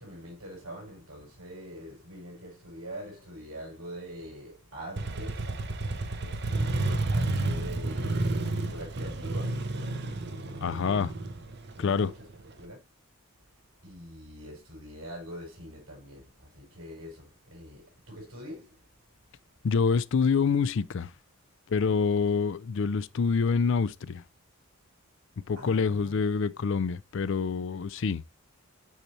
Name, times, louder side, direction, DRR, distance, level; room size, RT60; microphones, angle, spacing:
voice 1, 0.0-11.1 11.8-12.3 12.6-12.8 13.8-18.8 25.5-26.2, equal, 75° right, 4.9 m, -44 dB
Motorcycle, 5.0-12.6, right 2 dB, 50° right, 0.8 m, -31 dB
voice 2, 10.6-11.1 11.8-12.1 19.6-21.1 21.7-24.2 25.5-28.2, left 5 dB, 60° left, 0.4 m, -26 dB
8.1 x 4.3 x 3.1 m
head